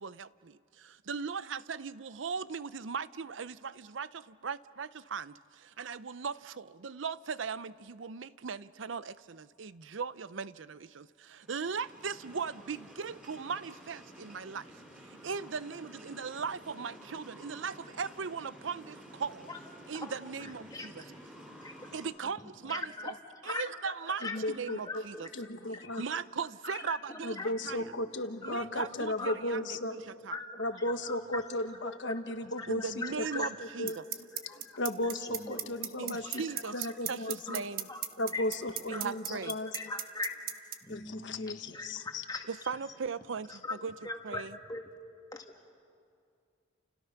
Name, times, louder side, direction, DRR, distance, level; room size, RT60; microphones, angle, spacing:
voice 1, 0.0-14.7 15.0-19.5 19.9-21.0 21.9-23.1 23.4-25.3 26.0-27.4 27.6-27.9 28.4-30.4 32.7-34.0 36.0-37.9 38.9-39.5 42.5-43.9 44.2-44.6, right 5 dB, 80° right, 0.6 m, -38 dB
sound 1, 11.4-22.1, equal, 5° right, 5.0 m, -52 dB
voice 2, 20.4-20.9 21.6-21.7 22.6-23.1 23.4-24.4 24.8-26.0 26.6-27.5 27.8-28.1 28.4-28.5 29.2-29.3 30.0-30.1 30.3-31.4 31.8-33.5 33.8-34.2 34.5-34.6 35.0-36.1 36.6-36.7 37.5-37.6 37.9-38.0 38.3-38.4 38.9-40.3 40.8-42.4 43.5-43.8 44.0-44.8 45.3-45.7, left 3 dB, 20° left, 2.2 m, -41 dB
voice 3, 24.2-24.8 25.3-26.0 27.2-29.9 30.6-33.4 33.8-33.9 34.7-36.4 36.7-37.6 38.2-39.7 40.9-42.2, left 1 dB, 70° left, 1.3 m, -35 dB
sound 2, 33.9-40.7, right 11 dB, 50° right, 1.3 m, -34 dB
30.0 x 29.5 x 5.9 m
head